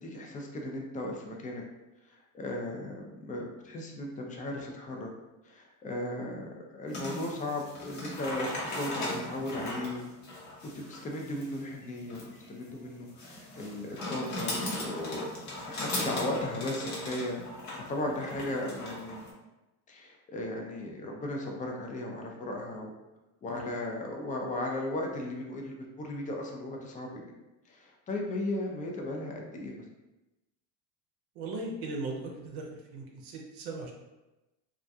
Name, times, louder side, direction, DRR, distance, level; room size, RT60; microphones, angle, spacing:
voice 1, 0.0-1.6 2.1-5.1 5.4-10.0 10.9-15.3 15.7-17.4 17.8-19.2 19.9-22.9 23.4-27.2 27.7-29.8, left 1 dB, 20° left, 0 dB, 0.3 m, -36 dB
sound 1, 6.9-19.3, left 1 dB, 45° left, 0.8 m, -38 dB
voice 2, 31.4-32.7 32.9-33.9, right 3 dB, 65° right, 0 dB, 0.6 m, -37 dB
2.3 x 2.2 x 2.6 m, 1.0 s
supercardioid pair, 105°, 42 cm